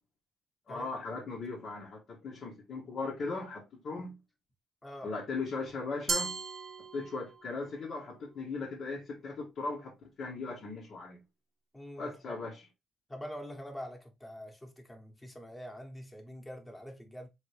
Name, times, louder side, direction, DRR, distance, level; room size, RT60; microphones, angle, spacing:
voice 1, 0.7-4.2 5.0-6.4 6.9-11.2 12.0-12.6, left 3 dB, 60° left, 1.3 m, -38 dB
voice 2, 4.8-5.1 11.7-12.4 13.1-17.3, equal, 15° left, 1.2 m, -45 dB
Glass, 6.1-7.5, right 5 dB, 45° right, 0.6 m, -36 dB
3.7 x 3.3 x 3.2 m
cardioid pair, 90°, 0 cm